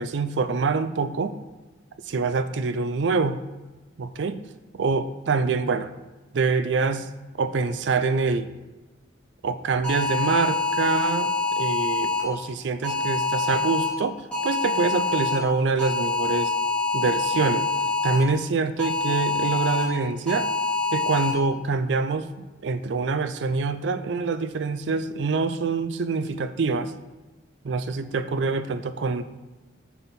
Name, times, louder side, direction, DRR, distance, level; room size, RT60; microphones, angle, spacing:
voice 1, 0.0-1.3 2.1-3.4 4.0-4.4 4.7-5.9 6.3-7.1 7.4-8.5 9.4-16.5 16.9-17.7 18.0-20.5 20.9-22.3 22.6-26.9 27.6-29.2, right 4 dB, 75° right, 11 dB, 0.4 m, -25 dB
sound 1, 9.8-12.2 12.8-13.9 14.3-15.4 15.8-18.2 18.8-19.8 20.3-21.3, left 3 dB, 5° left, 2.3 m, -25 dB
6.7 x 4.4 x 4.2 m, 1.1 s
head